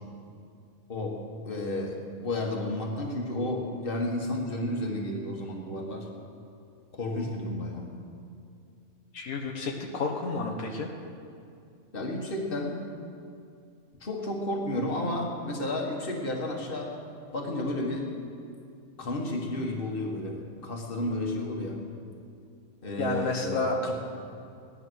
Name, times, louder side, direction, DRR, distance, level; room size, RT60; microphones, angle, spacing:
voice 1, 0.9-6.1 6.9-7.8 11.9-12.8 14.0-16.9 17.3-18.1 19.0-21.8 22.8-23.9, left 1 dB, 40° left, 0 dB, 2.0 m, -32 dB
voice 2, 9.1-10.9 23.0-23.9, left 3 dB, 80° left, 0 dB, 1.8 m, -30 dB
17.5 x 11.0 x 6.3 m, 2.4 s
omnidirectional pair, 1.5 m